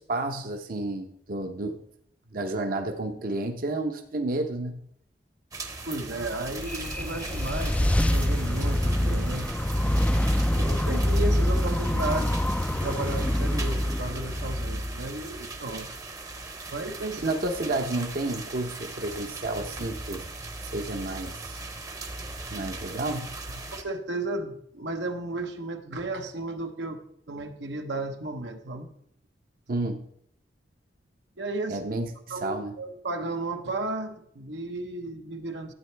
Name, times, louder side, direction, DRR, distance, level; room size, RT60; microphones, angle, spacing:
voice 1, 0.0-1.8 2.3-4.8 17.2-20.2 20.6-21.6 22.5-23.3 29.7-30.0 31.7-32.1 32.4-32.7, right 2 dB, 55° right, 4 dB, 0.8 m, -31 dB
sound 1, 5.5-23.8, right 3 dB, 20° right, 0.8 m, -39 dB
voice 2, 5.9-9.5 10.5-15.9 16.7-17.3 23.7-27.0 27.3-28.9 31.4-31.8 32.3-35.7, right 2 dB, 85° right, 5 dB, 1.0 m, -34 dB
sound 2, 6.3-15.5, left 1 dB, 5° left, 0.3 m, -26 dB
12.5 x 8.6 x 3.4 m, 0.68 s
head